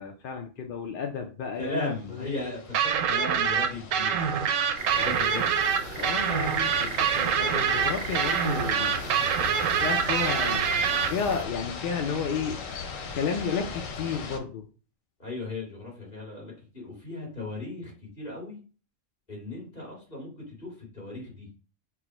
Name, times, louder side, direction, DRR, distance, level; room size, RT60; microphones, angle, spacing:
voice 1, 0.0-1.9 2.2-2.6 5.1-5.3 6.0-9.0 9.4-10.6 11.1-12.6 13.1-14.7, left 6 dB, 60° left, 3 dB, 0.6 m, -32 dB
voice 2, 1.6-4.1 4.9-5.7 15.2-18.6 19.3-21.5, left 2 dB, 35° left, -3 dB, 2.1 m, -37 dB
sound 1, 1.9-14.4, left 5 dB, 85° left, 1.1 m, -39 dB
sound 2, 2.7-11.1, right 7 dB, 80° right, 1.0 m, -25 dB
sound 3, 4.8-11.4, right 6 dB, 65° right, 0.6 m, -37 dB
4.6 x 2.1 x 4.3 m, 0.36 s
omnidirectional pair, 1.3 m